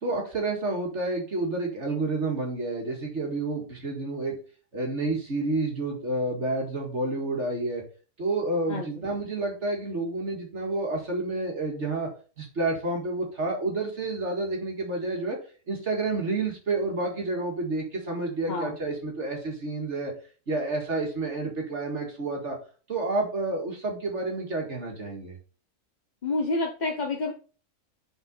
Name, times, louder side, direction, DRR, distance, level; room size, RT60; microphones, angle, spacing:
voice 1, 0.0-4.3 4.7-7.8 8.2-12.1 12.4-15.4 15.7-20.1 20.5-22.6 22.9-25.3, right 2 dB, 50° right, 1 dB, 2.2 m, -29 dB
voice 2, 26.2-27.3, left 2 dB, 35° left, 1 dB, 0.9 m, -28 dB
5.8 x 5.2 x 5.3 m, 0.38 s
omnidirectional pair, 1.6 m